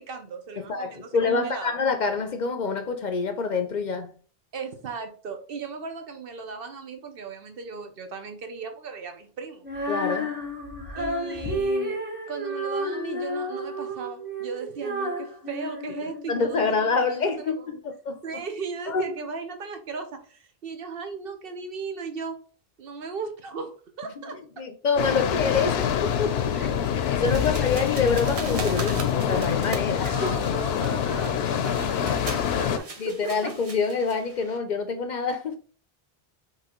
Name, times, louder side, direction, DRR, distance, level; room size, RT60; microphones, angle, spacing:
voice 1, 0.0-1.7 4.5-9.7 11.0-12.0 12.3-17.8 18.2-22.4 22.8-24.6 26.5-26.7 27.4-27.6 29.9-33.5, right 5 dB, 65° right, 1.0 m, -37 dB
voice 2, 0.6-4.1 9.9-10.4 16.3-18.4 18.9-19.1 24.3-26.6 27.1-30.1 33.0-35.6, left 5 dB, 55° left, 0.6 m, -27 dB
Female singing, 9.6-16.7, equal, 10° right, 1.2 m, -31 dB
sound 1, 25.0-32.8, left 8 dB, 85° left, 0.8 m, -26 dB
sound 2, 27.2-34.6, right 3 dB, 40° right, 0.7 m, -40 dB
5.8 x 2.9 x 3.0 m
omnidirectional pair, 1.0 m